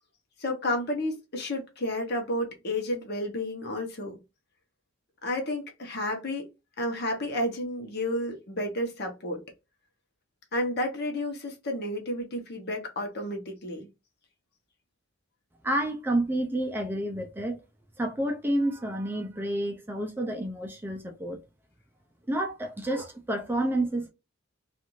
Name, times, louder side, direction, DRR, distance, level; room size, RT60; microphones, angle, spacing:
voice 1, 0.4-4.2 5.2-6.4 6.8-9.4 10.5-13.9, left 1 dB, 60° left, 0.9 m, -31 dB
voice 2, 15.6-17.6 18.0-21.4 22.3-24.1, right 1 dB, 10° right, 0.4 m, -29 dB
2.5 x 2.5 x 3.0 m
head